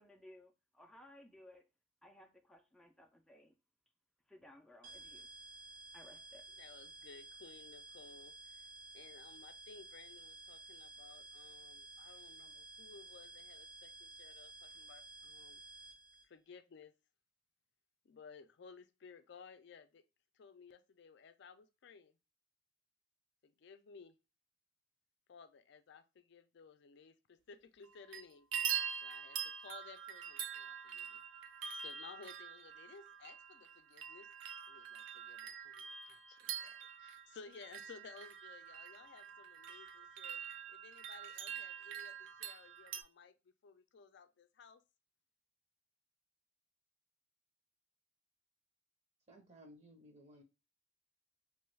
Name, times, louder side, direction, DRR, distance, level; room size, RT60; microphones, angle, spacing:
voice 1, 0.0-1.7 2.0-3.5 4.3-5.3 5.9-6.5, left 1 dB, ahead, 0.4 m, -60 dB
sound 1, 4.8-16.2, right 2 dB, 70° right, 1.8 m, -54 dB
voice 2, 6.6-8.7 8.9-15.6 16.2-16.9 18.0-20.0 20.3-22.2 23.4-24.2 25.3-28.5 29.0-31.2 31.6-34.3 34.7-40.4 40.7-43.3 43.6-44.8, left 5 dB, 65° left, 0.4 m, -57 dB
sound 2, 27.8-28.2 28.5-43.0, right 8 dB, 85° right, 0.4 m, -44 dB
voice 3, 49.3-50.4, equal, 35° right, 0.7 m, -58 dB
3.0 x 2.3 x 3.2 m
head